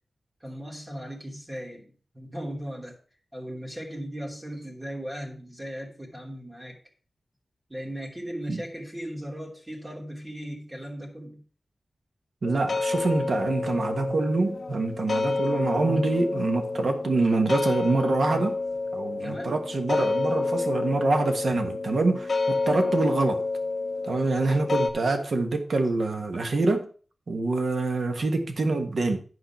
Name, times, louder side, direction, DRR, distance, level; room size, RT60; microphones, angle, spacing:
voice 1, 0.4-2.9 3.3-6.8 7.7-11.4 19.2-19.6, equal, 15° right, 2.8 m, -37 dB
sound 1, 12.4-24.9, left 3 dB, 55° left, 1.3 m, -29 dB
voice 2, 12.4-18.6 18.9-23.4 24.0-26.9 27.3-29.2, right 3 dB, 65° right, 1.5 m, -25 dB
11.0 x 5.0 x 5.8 m
wide cardioid pair, 125°, 0 cm